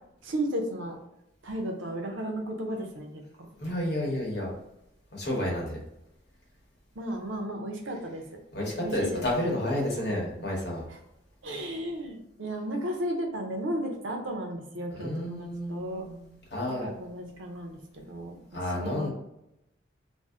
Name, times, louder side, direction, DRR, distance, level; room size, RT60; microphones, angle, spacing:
voice 1, 0.2-1.0 1.4-3.5 7.0-8.2 8.8-9.2 10.0-10.4 11.4-16.0 16.7-18.3 18.7-19.1, right 1 dB, 85° right, 3 dB, 0.6 m, -34 dB
voice 2, 3.5-4.5 5.1-5.8 8.5-10.8 14.9-16.8 18.5-19.1, left 1 dB, 60° left, -3 dB, 0.9 m, -31 dB
2.6 x 2.0 x 3.4 m, 0.86 s
head